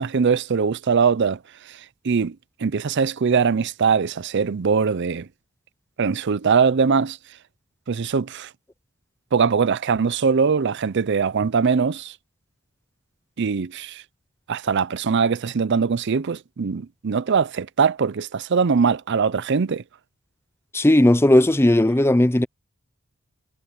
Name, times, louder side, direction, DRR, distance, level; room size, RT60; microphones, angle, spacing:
voice 1, 0.0-1.4 2.0-2.3 2.6-5.3 6.0-7.2 7.9-8.5 9.3-12.1 13.4-14.0 14.5-19.8, right 5 dB, 60° right, 0.5 m, -21 dB
voice 2, 20.7-22.5, left 1 dB, 10° left, 0.6 m, -16 dB
head